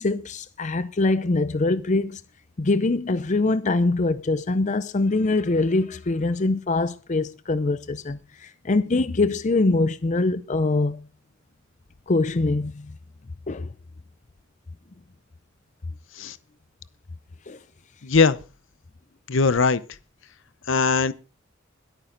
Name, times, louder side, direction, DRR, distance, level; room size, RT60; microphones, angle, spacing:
voice 1, 0.0-2.2 2.6-11.0 12.1-12.9 13.5-13.7 17.5-17.6, left 2 dB, 35° left, 0.6 m, -23 dB
voice 2, 18.0-18.4 19.3-19.8 20.7-21.1, left 4 dB, 65° left, 0.8 m, -19 dB
21.5 x 9.1 x 3.9 m
head